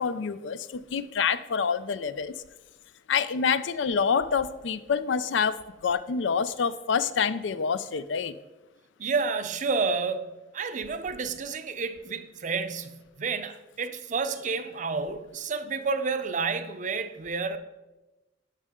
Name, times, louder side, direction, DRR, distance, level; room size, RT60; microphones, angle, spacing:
voice 1, 0.0-2.3 3.1-8.4, left 6 dB, 90° left, 0.5 m, -27 dB
voice 2, 9.0-17.6, right 4 dB, 45° right, 0.5 m, -30 dB
11.5 x 5.5 x 3.7 m
head